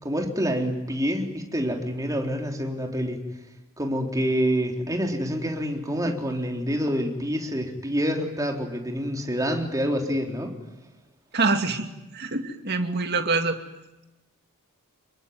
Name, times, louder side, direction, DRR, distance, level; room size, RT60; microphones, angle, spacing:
voice 1, 0.0-3.2 3.8-10.5, equal, 15° right, 2 dB, 3.7 m, -27 dB
voice 2, 11.3-11.9 12.1-13.6, right 3 dB, 50° right, 5 dB, 2.6 m, -25 dB
27.0 x 23.0 x 9.5 m, 0.97 s
head